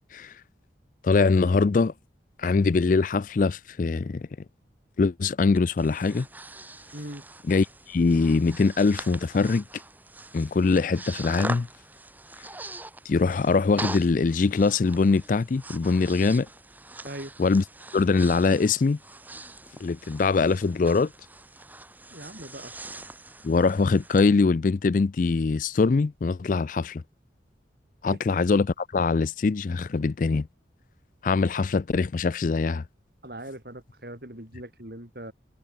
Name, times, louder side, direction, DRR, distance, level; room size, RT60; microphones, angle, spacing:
voice 1, 1.0-1.9 2.4-4.3 5.0-6.3 7.5-9.6 10.3-11.7 13.1-16.5 17.4-17.6 17.9-19.0 19.8-21.1 23.4-27.0 28.0-30.5 31.2-32.8, left 4 dB, 45° left, 0.4 m, -23 dB
Breathing, 5.5-24.3, right 2 dB, 10° right, 2.3 m, -42 dB
voice 2, 6.9-7.2 17.0-17.3 22.1-22.7 33.2-35.3, right 1 dB, 55° right, 5.2 m, -40 dB
head